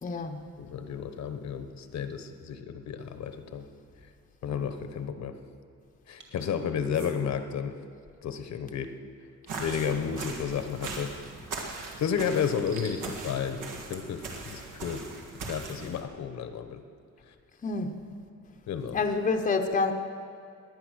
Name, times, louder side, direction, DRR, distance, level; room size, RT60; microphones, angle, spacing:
voice 1, 0.0-0.4 17.6-17.9 18.9-19.9, left 4 dB, 25° left, 5 dB, 0.8 m, -27 dB
voice 2, 0.6-3.6 4.4-5.3 6.1-7.8 8.2-8.9 9.6-11.1 12.0-13.6 13.9-15.0 15.5-16.8 18.7-19.0, left 7 dB, 60° left, 9 dB, 1.0 m, -32 dB
sound 1, 6.2-6.5 6.9-7.2 9.7-9.9 11.8-13.0, right 4 dB, 40° right, 2.6 m, -49 dB
sound 2, 9.5-16.0, right 3 dB, 80° right, 2.3 m, -40 dB
20.0 x 9.5 x 6.4 m, 2.4 s
cardioid pair, 155°, 31 cm